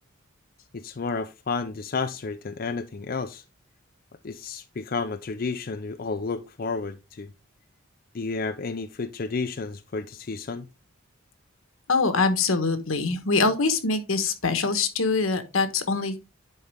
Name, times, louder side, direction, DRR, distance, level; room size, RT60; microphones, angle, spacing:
voice 1, 0.7-3.4 4.2-7.3 8.1-10.7, left 4 dB, 45° left, 0.5 m, -31 dB
voice 2, 11.9-16.3, left 4 dB, 85° left, 1.2 m, -24 dB
10.0 x 4.3 x 3.4 m
head